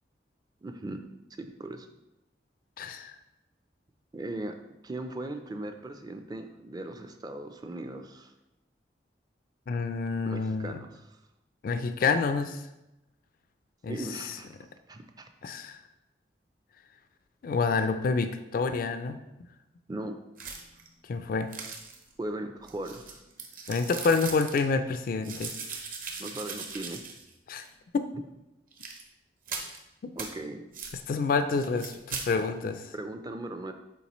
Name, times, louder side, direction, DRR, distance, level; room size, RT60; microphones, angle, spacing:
voice 1, 0.6-1.0 1.4-1.9 4.1-4.6 4.8-8.3 10.3-11.2 13.9-15.3 19.9-20.2 22.2-23.2 25.3-25.4 26.2-27.0 30.2-30.7 32.9-33.7, right 1 dB, 20° right, 7 dB, 0.4 m, -38 dB
voice 2, 2.8-3.2 9.7-10.8 11.6-12.6 13.8-14.0 15.4-15.8 17.4-19.2 21.0-21.5 23.7-25.5 27.5-27.7 27.9-28.1 29.5-29.7 30.0-30.1 31.1-32.9, left 4 dB, 50° left, 9 dB, 0.3 m, -28 dB
sound 1, 20.4-20.9 21.5-22.1 22.7-24.6 25.2-27.3 27.6-27.7 28.7-29.0 29.5-29.8 30.2-30.3 30.7-31.0 31.6-32.3, right 5 dB, 50° right, 0.9 m, -39 dB
7.0 x 4.5 x 3.0 m, 0.94 s
head